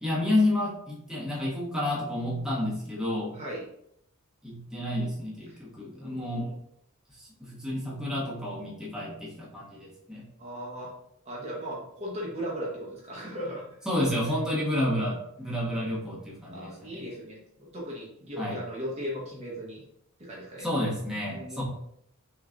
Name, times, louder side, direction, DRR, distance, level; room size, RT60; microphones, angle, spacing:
voice 1, 0.0-3.3 4.4-6.5 7.2-10.2 13.8-17.0 18.4-18.6 20.6-21.6, left 1 dB, 5° right, -6 dB, 1.3 m, -30 dB
voice 2, 3.3-3.7 5.5-5.6 5.9-6.5 10.4-10.9 11.2-13.6 14.5-14.6 15.6-15.7 16.5-19.8 20.2-20.7 21.3-21.6, equal, 30° right, -5 dB, 1.1 m, -37 dB
6.1 x 3.2 x 2.5 m, 0.72 s
head